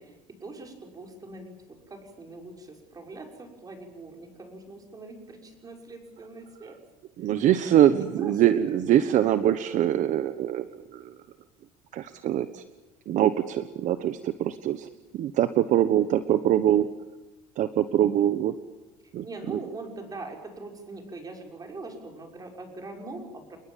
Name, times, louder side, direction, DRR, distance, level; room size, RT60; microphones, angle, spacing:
voice 1, 0.0-6.8 7.2-7.3 7.8-8.7 19.2-23.6, right 2 dB, 25° right, 3 dB, 6.2 m, -42 dB
voice 2, 7.2-11.2 11.9-12.6 13.1-14.9 15.1-16.9 17.6-18.6 19.1-19.6, right 11 dB, 55° right, 11 dB, 1.2 m, -23 dB
29.5 x 21.0 x 7.5 m, 1.1 s
cardioid pair, 125°, 15 cm